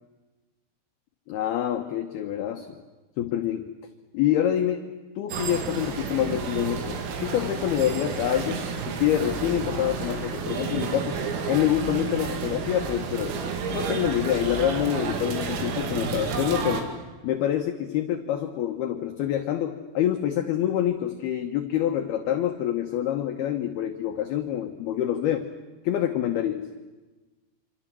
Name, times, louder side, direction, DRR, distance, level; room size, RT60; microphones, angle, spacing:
voice 1, 1.3-2.8 3.2-3.7 4.1-4.8 5.2-13.4 13.7-16.9 17.2-25.5 25.8-26.7, left 11 dB, 75° left, 6 dB, 2.3 m, -26 dB
sound 1, 5.3-16.8, right 6 dB, 85° right, 5.2 m, -31 dB
26.5 x 26.5 x 7.6 m, 1.2 s
omnidirectional pair, 6.0 m